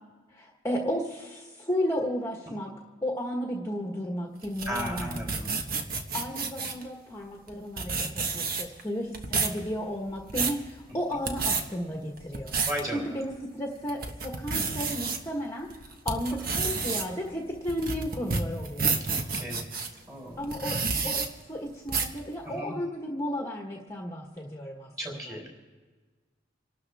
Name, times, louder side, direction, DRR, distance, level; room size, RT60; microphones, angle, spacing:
voice 1, 0.3-2.7 3.0-5.4 6.1-12.5 12.9-18.9 20.4-25.1, equal, 15° left, 0 dB, 1.4 m, -33 dB
sound 1, 4.4-6.8 7.5-7.6 7.8-8.8 9.1-9.6 10.1-10.6 11.1-11.6 12.2-12.8 13.3-13.4 13.9-15.2 15.7-19.9 20.4-21.3 21.9-22.2, right 4 dB, 50° right, 1.3 m, -29 dB
voice 2, 4.7-5.6 11.1-11.2 12.7-13.0 16.5-16.6 19.1-19.7 20.0-20.4 22.4-22.8 25.0-25.5, equal, 20° right, -1 dB, 4.9 m, -36 dB
28.0 x 12.5 x 3.5 m, 1.4 s
head